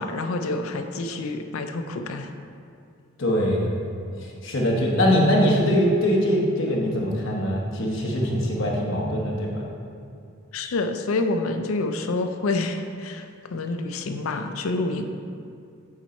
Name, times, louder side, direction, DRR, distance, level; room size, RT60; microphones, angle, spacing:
voice 1, 0.0-2.3 10.5-13.3 13.5-15.0, left 2 dB, 85° left, 7 dB, 0.5 m, -27 dB
voice 2, 3.2-3.8 4.2-9.7, equal, 65° left, -2 dB, 1.1 m, -22 dB
7.4 x 4.4 x 4.1 m, 2.4 s
head